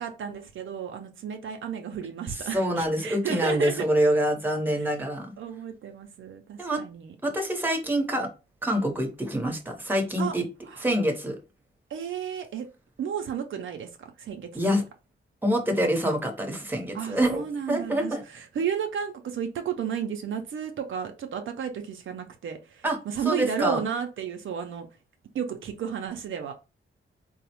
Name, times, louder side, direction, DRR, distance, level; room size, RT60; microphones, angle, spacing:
voice 1, 0.0-3.9 4.7-4.9 5.4-7.1 10.2-10.4 10.6-10.9 11.9-12.7 13.0-14.7 16.9-24.9 25.3-26.5, right 7 dB, 70° right, 0.5 m, -33 dB
voice 2, 2.5-5.3 6.6-6.8 7.2-8.3 8.6-10.4 10.8-11.4 14.5-14.8 15.4-17.4 17.7-18.2 22.8-23.0 23.2-23.8, equal, 10° right, 0.8 m, -26 dB
3.8 x 2.0 x 2.9 m
cardioid pair, 95°, 21 cm